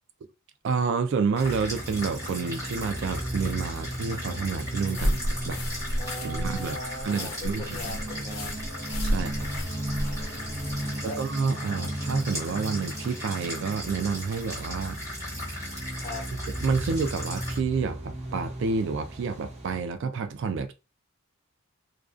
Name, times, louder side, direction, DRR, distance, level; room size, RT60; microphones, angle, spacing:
voice 1, 0.6-5.6 6.1-7.6 9.0-9.5 11.0-15.0 16.6-20.7, right 5 dB, 60° right, 0.3 m, -29 dB
sound 1, 1.3-17.6, left 1 dB, 15° right, 1.1 m, -39 dB
sound 2, 1.4-19.8, right 1 dB, 30° right, 0.7 m, -36 dB
sound 3, 4.9-11.0, equal, 75° left, 0.5 m, -32 dB
voice 2, 6.0-8.6 10.3-11.2 16.0-16.2, left 1 dB, 30° left, 0.8 m, -39 dB
2.3 x 2.2 x 2.4 m
head